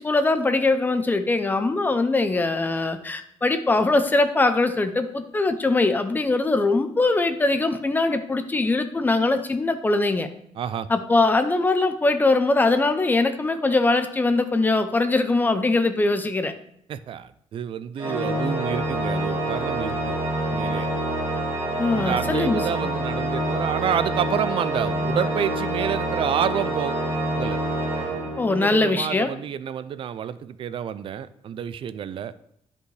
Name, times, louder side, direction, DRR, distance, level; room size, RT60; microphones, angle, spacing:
voice 1, 0.0-10.3 10.9-16.5 18.2-18.3 21.8-23.0 28.4-29.3, left 2 dB, 15° left, 9 dB, 0.5 m, -22 dB
voice 2, 10.6-10.9 16.9-20.9 21.9-27.0 27.3-27.6 28.5-32.3, right 8 dB, 50° right, 14 dB, 0.4 m, -29 dB
Organ, 18.0-28.8, right 1 dB, 25° right, 2.9 m, -27 dB
10.5 x 5.3 x 3.3 m, 0.71 s
cardioid pair, 160°, 11 cm